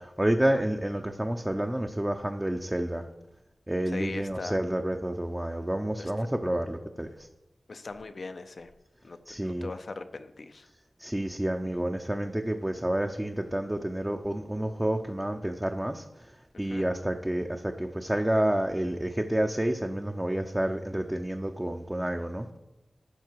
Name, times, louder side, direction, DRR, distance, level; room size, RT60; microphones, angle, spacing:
voice 1, 0.0-3.1 3.7-7.3 9.3-9.7 11.0-22.5, right 1 dB, 15° right, 4 dB, 0.7 m, -29 dB
voice 2, 3.9-4.6 6.0-6.1 7.7-8.7 9.0-10.7 16.7-16.9, left 3 dB, 70° left, 10 dB, 0.7 m, -39 dB
12.5 x 5.7 x 4.7 m, 1.0 s
cardioid pair, 50°, 0 cm